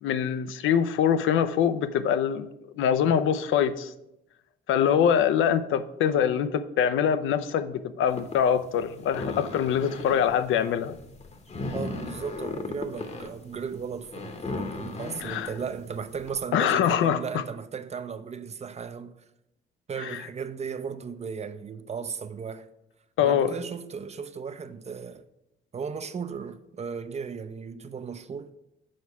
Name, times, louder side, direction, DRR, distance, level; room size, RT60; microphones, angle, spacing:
voice 1, 0.0-2.5 2.8-3.9 4.7-11.0 15.2-15.5 16.5-17.4 20.0-20.2 23.2-23.6, left 8 dB, 80° left, 0.5 m, -24 dB
sound 1, 8.1-16.4, left 3 dB, 35° left, 0.9 m, -37 dB
voice 2, 11.7-19.2 19.9-22.7 23.2-25.2 25.7-28.5, right 6 dB, 35° right, 0.5 m, -36 dB
6.4 x 4.7 x 5.5 m
cardioid pair, 90°, 20 cm